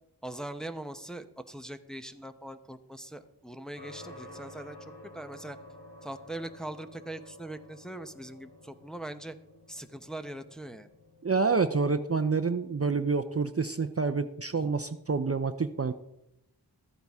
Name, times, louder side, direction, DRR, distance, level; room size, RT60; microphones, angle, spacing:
voice 1, 0.2-5.6 6.0-9.4 9.7-10.9 14.5-14.8, right 1 dB, ahead, 8 dB, 0.8 m, -41 dB
sound 1, 3.7-13.4, left 1 dB, 85° left, 3.9 m, -52 dB
voice 2, 11.2-15.9, right 4 dB, 35° right, 9 dB, 0.6 m, -28 dB
14.0 x 9.4 x 3.6 m, 0.84 s
wide cardioid pair, 40°, 41 cm